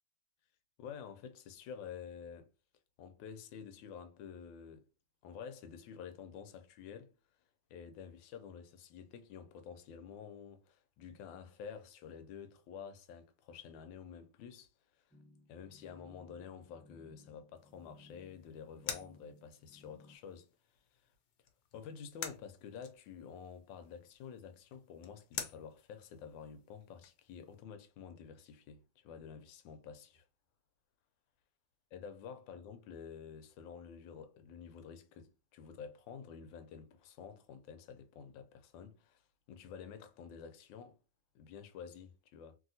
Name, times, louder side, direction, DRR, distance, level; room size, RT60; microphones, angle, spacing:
voice 1, 0.8-2.5 3.0-4.9 5.2-7.1 7.7-15.0 15.5-20.5 21.0-21.1 21.7-30.2 31.9-41.0 41.3-42.6, left 7 dB, 90° left, 1.3 m, -50 dB
sound 1, 15.1-20.2, left 2 dB, 5° left, 0.8 m, -61 dB
sound 2, 17.5-27.6, left 8 dB, 65° left, 0.9 m, -50 dB
3.0 x 2.7 x 2.6 m
omnidirectional pair, 2.0 m